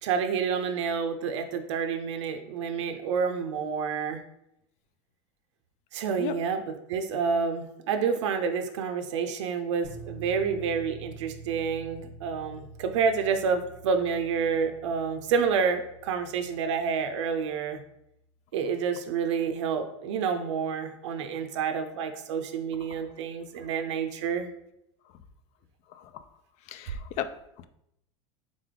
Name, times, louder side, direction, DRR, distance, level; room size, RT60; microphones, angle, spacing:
voice 1, 0.0-4.2 5.9-17.8 18.5-24.5, right 6 dB, 80° right, 7 dB, 0.5 m, -29 dB
sound 1, 9.8-18.0, right 3 dB, 85° left, 1.4 m, -47 dB
voice 2, 25.9-26.2 26.7-27.3, left 10 dB, 50° left, 11 dB, 0.4 m, -35 dB
3.7 x 3.4 x 3.6 m, 0.80 s
hypercardioid pair, 105°, 15 cm